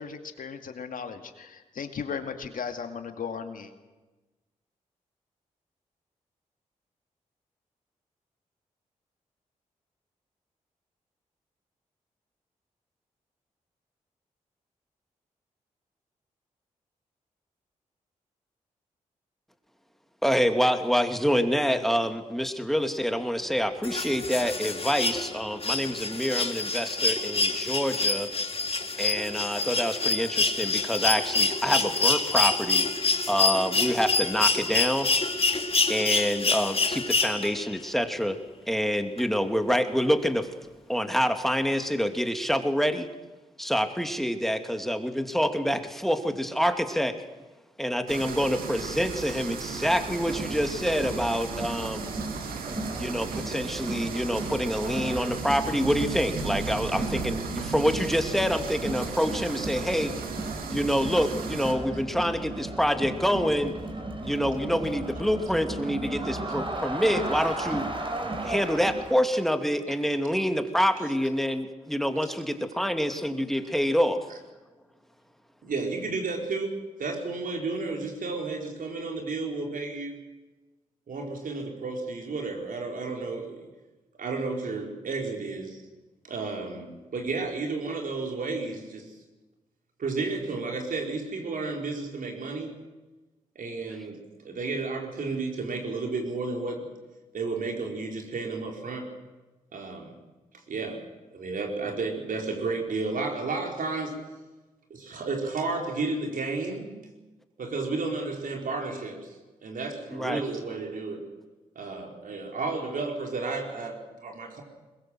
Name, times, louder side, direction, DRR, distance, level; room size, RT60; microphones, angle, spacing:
voice 1, 0.0-3.7, left 6 dB, 70° left, 7 dB, 2.3 m, -36 dB
voice 2, 20.2-28.3 29.0-32.9 33.3-35.1 35.9-38.4 38.7-40.5 40.9-43.1 43.6-47.2 47.8-52.1 53.0-60.1 60.7-63.8 64.2-67.9 68.4-74.2 110.1-110.4, equal, ahead, 7 dB, 2.6 m, -26 dB
sound 1, 23.8-37.8 39.2-39.3, left 3 dB, 40° left, 2.4 m, -26 dB
sound 2, 48.1-61.7, right 5 dB, 85° right, 2.3 m, -35 dB
Crowd, 49.8-69.3, right 2 dB, 35° right, 4.8 m, -36 dB
voice 3, 75.6-80.2 81.1-83.7 84.2-85.8 86.2-89.1 90.0-92.7 93.5-96.9 97.3-99.1 99.7-100.1 100.7-101.0 101.3-104.1 104.9-106.9 107.6-109.3 109.6-111.3 111.7-114.6, right 3 dB, 70° right, 2 dB, 4.7 m, -32 dB
21.5 x 21.0 x 7.7 m, 1.2 s
supercardioid pair, 45°, 15 cm